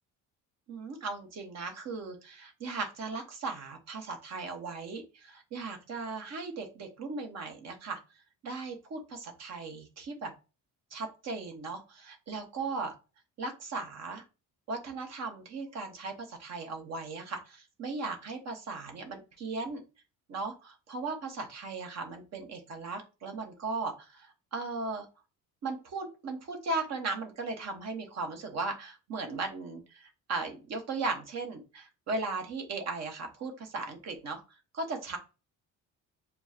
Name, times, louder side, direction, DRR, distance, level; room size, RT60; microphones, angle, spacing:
voice 1, 0.7-8.0 8.4-10.3 10.9-12.9 13.4-14.2 14.7-19.8 20.3-24.2 24.5-25.0 25.6-34.4 34.7-35.2, right 3 dB, 55° right, 4 dB, 1.3 m, -37 dB
6.9 x 2.4 x 2.8 m, 0.30 s
cardioid pair, 130°, 32 cm